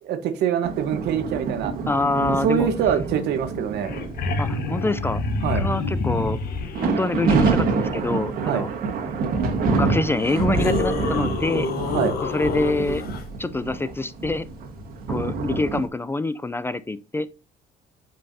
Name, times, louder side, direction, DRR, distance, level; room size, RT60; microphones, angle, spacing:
voice 1, 0.0-1.7 2.4-3.9 5.4-5.6 8.5-8.7 11.9-12.1, right 8 dB, 75° right, 1.1 m, -24 dB
sound 1, 0.6-5.3 5.7-5.9 6.6-15.9, right 4 dB, 60° right, 1.5 m, -27 dB
voice 2, 1.9-2.7 4.4-5.2 5.5-6.4 6.8-8.7 9.7-11.7 12.2-13.0 13.4-14.5 15.1-17.3, left 2 dB, 15° left, 0.3 m, -26 dB
sound 2, 3.5-3.6 3.7-6.9 9.3-9.4 10.1-13.2 15.7-15.8, left 3 dB, 65° left, 1.2 m, -27 dB
8.7 x 5.4 x 2.7 m
cardioid pair, 110°, 17 cm